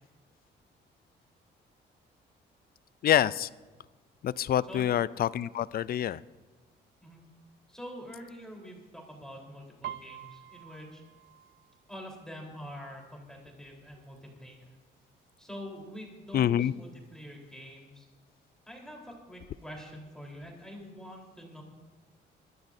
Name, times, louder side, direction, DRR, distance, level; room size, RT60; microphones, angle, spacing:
voice 1, 3.0-3.5 4.2-6.2 16.3-16.7, left 10 dB, 50° left, 19 dB, 0.4 m, -26 dB
voice 2, 4.7-5.0 7.0-7.2 7.7-11.0 11.9-14.7 15.4-18.1 18.7-21.6, equal, 5° left, -1 dB, 3.8 m, -45 dB
Piano, 9.8-13.5 13.8-14.2 14.6-15.2 15.8-15.9 16.1-17.2 17.5-17.6, right 12 dB, 65° right, 0.4 m, -47 dB
25.0 x 13.0 x 2.6 m, 1.3 s
cardioid pair, 90°, 20 cm